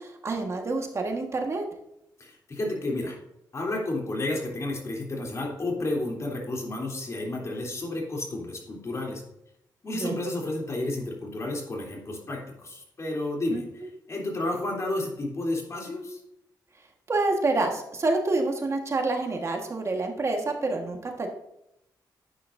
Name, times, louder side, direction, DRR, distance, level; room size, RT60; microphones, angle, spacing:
voice 1, 0.0-1.6 10.0-10.2 13.5-13.6 17.1-21.3, right 2 dB, 40° right, 3 dB, 1.5 m, -27 dB
voice 2, 2.2-3.2 3.5-9.2 9.8-13.6 14.1-16.2, left 2 dB, 40° left, -1 dB, 3.2 m, -31 dB
10.5 x 8.7 x 2.6 m, 0.82 s
cardioid pair, 95°, 8 cm